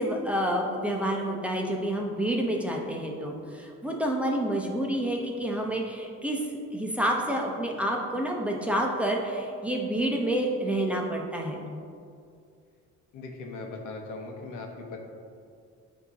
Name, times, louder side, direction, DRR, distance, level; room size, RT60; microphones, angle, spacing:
voice 1, 0.0-6.4 6.7-11.6, right 1 dB, 5° right, -1 dB, 0.8 m, -28 dB
voice 2, 13.1-15.0, left 3 dB, 85° left, 2 dB, 0.9 m, -39 dB
8.8 x 3.0 x 4.1 m, 2.4 s
cardioid pair, 90°, 30 cm